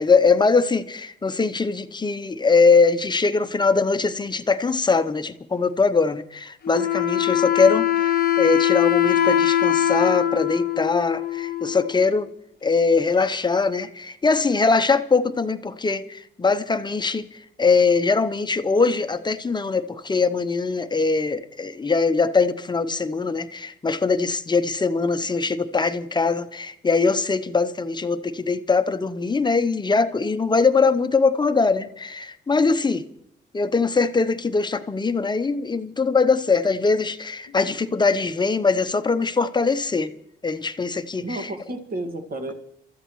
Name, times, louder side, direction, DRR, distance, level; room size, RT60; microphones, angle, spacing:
voice 1, 0.0-12.3 12.6-33.0 33.5-40.1 40.4-41.5, left 4 dB, 20° left, 0.8 m, -22 dB
Wind instrument woodwind instrument, 6.6-12.1, left 11 dB, 50° left, 0.8 m, -22 dB
voice 2, 41.2-42.5, right 1 dB, 50° right, 1.9 m, -32 dB
30.0 x 13.5 x 3.1 m
cardioid pair, 90°, 20 cm